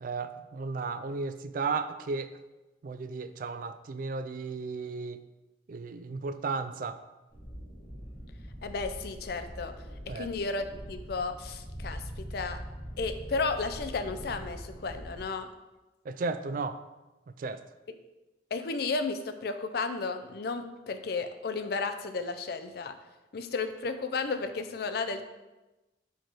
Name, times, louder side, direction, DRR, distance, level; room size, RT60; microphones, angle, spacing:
voice 1, 0.0-2.4 2.8-5.2 5.7-7.0 10.1-10.3 16.1-16.8 17.3-17.6, right 4 dB, 50° right, 11 dB, 0.3 m, -34 dB
sound 1, 7.3-15.2, equal, 20° left, 2.1 m, -43 dB
voice 2, 8.6-9.7 10.1-12.6 13.0-15.5 18.5-22.9 23.3-25.2, left 4 dB, 60° left, 9 dB, 0.4 m, -33 dB
4.6 x 4.6 x 4.5 m, 1.1 s
head